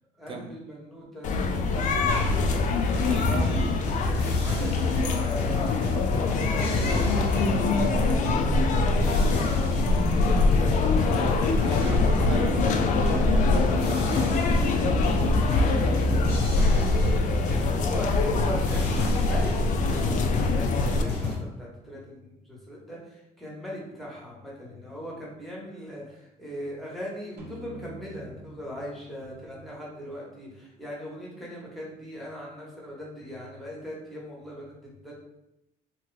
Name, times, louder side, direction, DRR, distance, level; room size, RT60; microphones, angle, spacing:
voice 1, 0.2-2.0 3.5-3.7 4.0-12.1 17.6-35.2, equal, ahead, -5 dB, 1.0 m, -40 dB
sound 1, 1.2-21.0, left 3 dB, 50° left, 0.4 m, -24 dB
sound 2, 2.1-21.4, left 3 dB, 85° left, 0.8 m, -30 dB
voice 2, 3.0-3.8 11.6-15.9, right 1 dB, 30° right, 4 dB, 0.5 m, -36 dB
sound 3, 27.4-30.9, equal, 70° right, 0.9 m, -47 dB
2.9 x 2.3 x 3.2 m, 0.89 s
cardioid pair, 110°, 17 cm